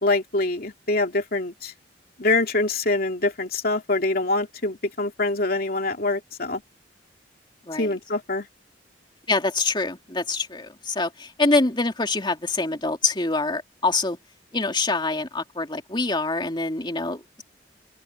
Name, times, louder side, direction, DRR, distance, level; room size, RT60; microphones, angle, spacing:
voice 1, 0.0-1.7 2.2-6.6 7.8-8.5, left 2 dB, 55° left, 2.7 m, -24 dB
voice 2, 9.3-14.2 14.5-17.4, left 3 dB, 25° left, 2.5 m, -25 dB
open air
head